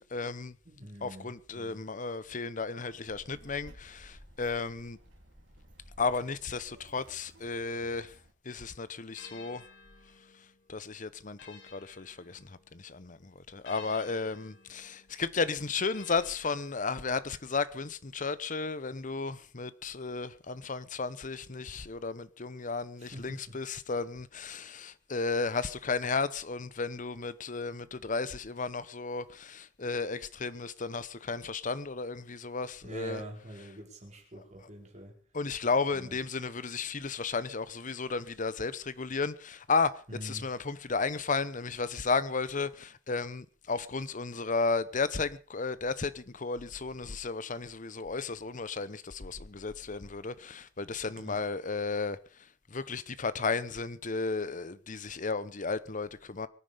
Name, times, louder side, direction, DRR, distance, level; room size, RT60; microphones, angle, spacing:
voice 1, 0.0-0.6 1.0-5.0 6.0-8.2 8.4-9.6 10.4-33.2 34.6-34.7 35.3-56.5, left 4 dB, 45° left, 0.9 m, -34 dB
voice 2, 0.6-1.8 23.0-23.6 32.8-35.2 35.9-36.2 40.1-40.5 51.1-51.4, right 1 dB, 40° right, 5.0 m, -45 dB
Child speech kid speaking, 3.0-8.3, equal, 75° right, 3.6 m, -55 dB
sound 1, 9.1-12.9 13.6-17.3, left 5 dB, 75° left, 3.5 m, -55 dB
23.5 x 9.8 x 5.1 m
head